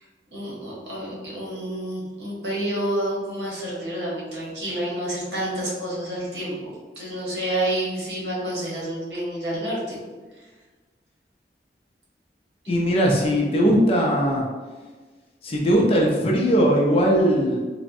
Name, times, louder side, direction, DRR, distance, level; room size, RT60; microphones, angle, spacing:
voice 1, 0.3-6.5 7.0-10.0, right 1 dB, 80° right, -5 dB, 1.0 m, -29 dB
voice 2, 12.7-14.4 15.4-17.6, equal, 35° left, -1 dB, 0.4 m, -19 dB
3.3 x 2.0 x 2.6 m, 1.3 s
head